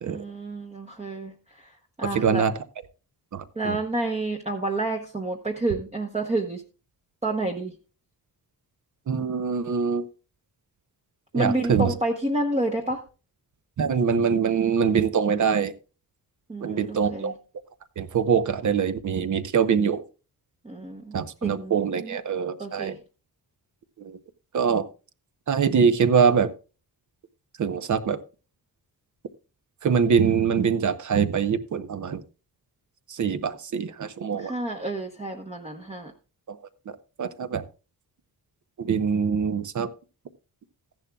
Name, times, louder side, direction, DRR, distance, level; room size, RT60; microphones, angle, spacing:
voice 1, 0.1-2.5 3.5-6.6 7.2-7.7 11.3-13.0 16.5-17.3 20.6-21.1 21.4-22.2 22.6-23.0 34.4-36.1, right 2 dB, 15° right, 1 dB, 0.9 m, -29 dB
voice 2, 2.1-2.5 3.3-3.8 9.1-10.0 11.3-11.9 13.8-15.7 16.6-17.3 18.0-20.0 21.1-22.9 24.0-24.2 24.5-24.8 25.5-26.5 27.6-28.2 29.8-32.2 33.1-34.5 36.5-36.6 37.2-37.6 38.8-39.9, right 6 dB, 50° right, 12 dB, 0.8 m, -23 dB
14.5 x 10.5 x 2.3 m, 0.34 s
wide cardioid pair, 180°, 39 cm